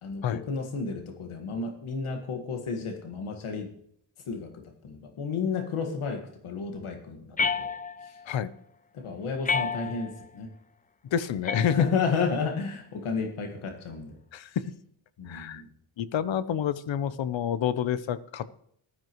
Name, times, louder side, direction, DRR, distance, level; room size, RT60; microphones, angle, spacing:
voice 1, 0.0-3.7 4.3-7.7 8.0-8.2 8.9-10.5 11.6-14.1 15.2-15.7, left 5 dB, 80° left, 5 dB, 1.8 m, -32 dB
sound 1, 7.4-8.3 9.4-10.3 11.5-12.3, left 5 dB, 20° left, 0.4 m, -30 dB
voice 2, 11.1-11.9 14.3-14.7 15.3-15.6 16.0-18.5, left 9 dB, 65° left, 16 dB, 0.8 m, -28 dB
15.0 x 12.0 x 3.1 m, 0.67 s
cardioid pair, 90°, 49 cm